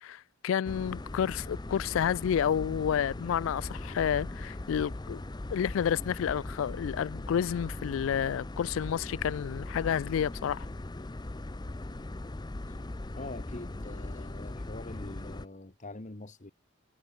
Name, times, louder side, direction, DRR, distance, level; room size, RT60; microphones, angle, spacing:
voice 1, 0.0-5.2 5.5-10.7, left 8 dB, 70° left, 0.3 m, -30 dB
sound 1, 0.6-15.5, left 2 dB, 20° left, 0.6 m, -39 dB
Fire, 1.6-4.0, equal, 10° right, 1.2 m, -57 dB
voice 2, 13.1-16.5, left 2 dB, 35° left, 1.2 m, -44 dB
head